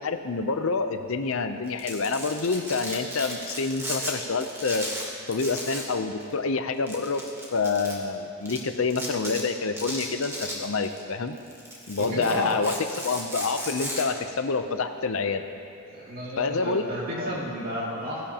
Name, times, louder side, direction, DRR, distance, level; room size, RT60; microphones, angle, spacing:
voice 1, 0.0-4.9 5.3-7.2 7.5-11.3 11.9-15.4 16.4-16.9 17.2-17.4, left 4 dB, 65° left, 8 dB, 0.6 m, -27 dB
Domestic sounds home sounds, 1.7-4.1 4.4-5.9 6.2-6.3 6.9-7.9 8.5-8.6 8.9-9.4 9.8-11.0 11.4-14.0, equal, 10° right, 1.2 m, -35 dB
voice 2, 12.0-12.5 15.9-18.2, equal, 40° right, -6 dB, 2.4 m, -32 dB
16.5 x 10.5 x 2.9 m, 2.5 s
head